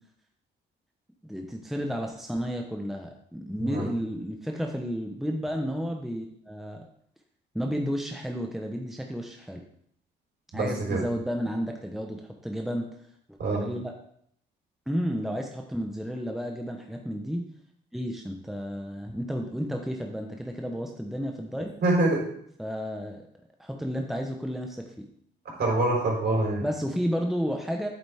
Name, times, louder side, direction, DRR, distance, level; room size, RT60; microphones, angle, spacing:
voice 1, 1.2-6.8 7.5-9.6 10.5-12.9 13.5-13.9 14.9-17.5 17.9-21.8 22.6-23.2 23.6-25.1 26.6-27.9, equal, ahead, 2 dB, 1.0 m, -32 dB
voice 2, 10.5-11.0 13.4-13.6 21.8-22.2 25.6-26.6, right 2 dB, 55° right, -2 dB, 4.3 m, -25 dB
8.7 x 8.0 x 3.6 m, 0.66 s
cardioid pair, 90°, 20 cm